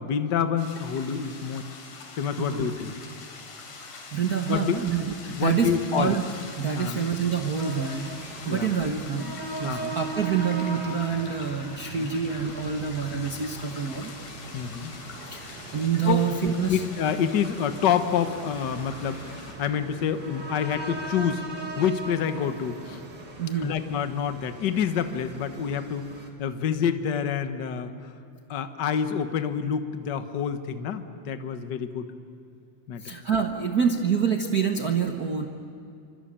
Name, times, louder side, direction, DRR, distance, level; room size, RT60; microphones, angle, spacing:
voice 1, 0.0-1.7 2.2-3.0 4.5-4.8 5.3-6.2 6.7-7.0 8.4-8.7 9.6-10.0 11.9-12.1 14.5-14.9 16.0-16.2 16.7-21.4 21.8-23.0 23.6-26.1 26.4-27.9 28.5-32.1 32.9-33.1, left 8 dB, 55° left, 9 dB, 1.2 m, -27 dB
sound 1, 0.6-19.5, left 4 dB, 80° left, 4.6 m, -44 dB
voice 2, 2.4-2.7 4.1-6.3 6.6-8.1 8.5-14.1 15.3-16.8 23.4-23.7 33.0-35.5, right 6 dB, 60° right, 4 dB, 0.9 m, -27 dB
sound 2, 7.5-26.3, right 3 dB, 35° right, 2.7 m, -40 dB
26.5 x 24.5 x 8.9 m, 2.6 s
omnidirectional pair, 3.6 m